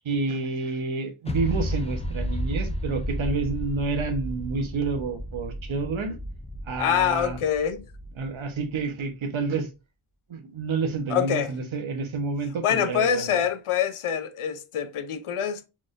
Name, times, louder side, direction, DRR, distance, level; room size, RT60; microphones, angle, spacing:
voice 1, 0.0-6.2 6.7-7.4 8.2-9.7 10.3-13.4, right 4 dB, 70° right, 1.0 m, -29 dB
sound 1, 1.3-8.8, equal, 15° left, 0.4 m, -33 dB
voice 2, 6.8-7.9 11.1-11.5 12.6-15.7, left 9 dB, 85° left, 0.7 m, -25 dB
4.1 x 3.5 x 2.5 m
wide cardioid pair, 90°, 49 cm